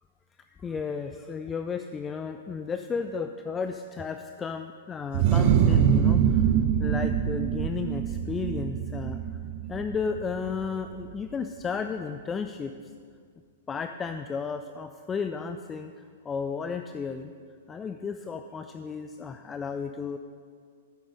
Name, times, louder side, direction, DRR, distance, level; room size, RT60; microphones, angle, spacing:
voice 1, 0.6-6.4 6.8-9.2 9.7-12.7 13.7-15.9 16.2-17.3 17.7-20.2, left 5 dB, 15° left, 8 dB, 0.4 m, -33 dB
sound 1, 5.1-10.7, right 8 dB, 45° right, 0.6 m, -24 dB
8.6 x 8.3 x 5.3 m, 2.1 s
figure-of-eight pair, 105°, 0 cm